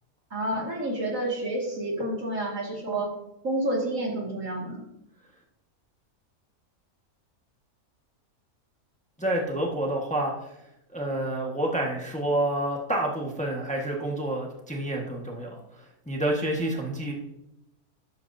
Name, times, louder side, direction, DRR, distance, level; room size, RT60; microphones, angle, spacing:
voice 1, 0.3-3.1 3.4-4.8, right 1 dB, 60° right, -1 dB, 2.6 m, -29 dB
voice 2, 9.2-10.3 10.9-15.6 16.1-17.1, right 1 dB, 5° left, 0 dB, 1.3 m, -28 dB
13.5 x 11.5 x 2.7 m, 0.87 s
omnidirectional pair, 1.5 m